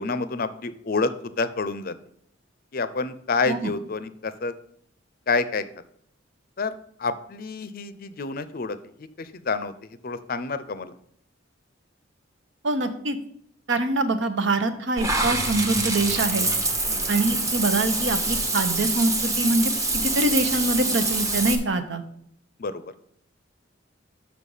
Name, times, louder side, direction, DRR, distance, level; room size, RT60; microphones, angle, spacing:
voice 1, 0.0-1.9 2.7-4.5 5.3-5.7 6.6-6.7 7.0-10.9 16.9-17.2 22.6-22.8, left 4 dB, 50° left, 13 dB, 0.5 m, -28 dB
voice 2, 12.6-13.2 13.7-16.5 17.1-22.0, right 2 dB, 70° right, 8 dB, 0.9 m, -24 dB
Water / Bathtub (filling or washing), 15.0-21.5, right 2 dB, 15° right, 0.9 m, -25 dB
6.4 x 6.0 x 5.4 m, 0.67 s
head